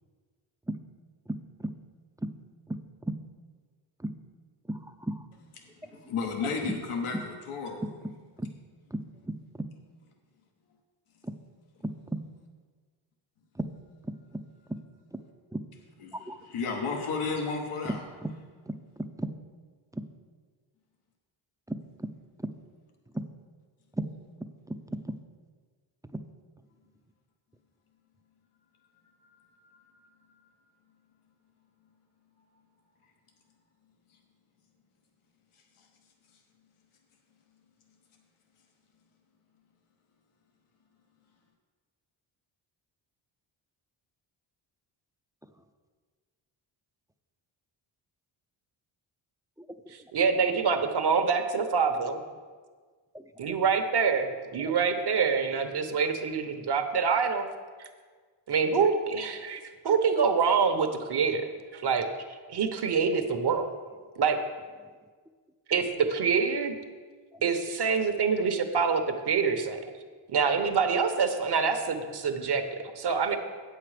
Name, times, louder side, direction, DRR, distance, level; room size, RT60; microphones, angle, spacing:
voice 1, 1.3-1.7 2.2-2.3 2.7-2.8 3.1-3.2 4.0-4.1 4.7-5.3 5.9-6.0 7.1-7.2 8.4-8.5 8.9-9.7 11.2-11.3 11.8-12.2 13.6-13.7 14.0-14.4 14.7-14.8 15.1-15.2 15.5-15.6 16.1-16.4 18.2-18.3 18.7-19.3 19.9-20.0 21.7-22.1 22.4-22.5 23.1-23.2 23.9-24.1 24.7-25.2 26.1-26.2 49.7-49.8 53.1-53.2 54.6-54.8, right 1 dB, 5° right, 7 dB, 0.5 m, -35 dB
voice 2, 5.8-7.8 16.0-16.1 16.4-18.0 29.2-30.5, left 4 dB, 90° left, 3 dB, 1.2 m, -34 dB
voice 3, 50.1-52.2 53.4-57.5 57.8-57.9 58.5-59.6 59.8-63.7 64.2-64.4 65.7-66.8 67.4-69.8 70.3-73.4, right 5 dB, 55° right, 7 dB, 1.1 m, -26 dB
8.6 x 7.7 x 5.0 m, 1.5 s
cardioid pair, 85°, 49 cm